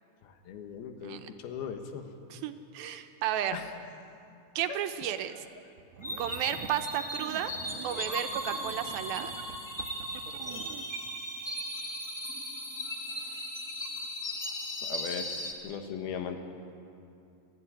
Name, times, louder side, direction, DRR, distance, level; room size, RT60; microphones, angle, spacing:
voice 1, 0.5-1.2 1.4-2.0 3.5-3.6 14.8-15.4 15.6-16.4, left 7 dB, 85° left, 5 dB, 3.3 m, -37 dB
voice 2, 1.0-1.3 2.3-3.6 4.6-5.4 6.2-7.5 7.8-9.3, right 11 dB, 80° right, 8 dB, 2.6 m, -33 dB
sound 1, 5.8-6.8 7.2-10.8, right 6 dB, 60° right, 1.9 m, -45 dB
sound 2, 6.0-15.5, equal, 5° left, 1.9 m, -37 dB
28.5 x 11.5 x 9.9 m, 2.6 s
omnidirectional pair, 4.4 m